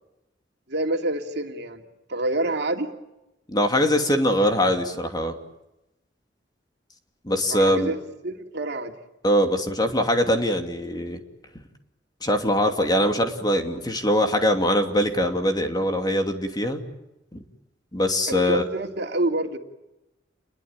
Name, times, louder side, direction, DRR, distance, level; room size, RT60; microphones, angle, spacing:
voice 1, 0.7-1.8 2.1-2.9 7.5-8.0 8.2-8.9 18.3-19.6, right 1 dB, 65° right, 4 dB, 2.8 m, -27 dB
voice 2, 3.5-5.3 7.2-7.9 9.2-11.2 12.2-16.8 17.3-17.4 17.9-18.6, equal, 25° left, 4 dB, 2.8 m, -22 dB
29.5 x 22.0 x 8.8 m, 0.94 s
head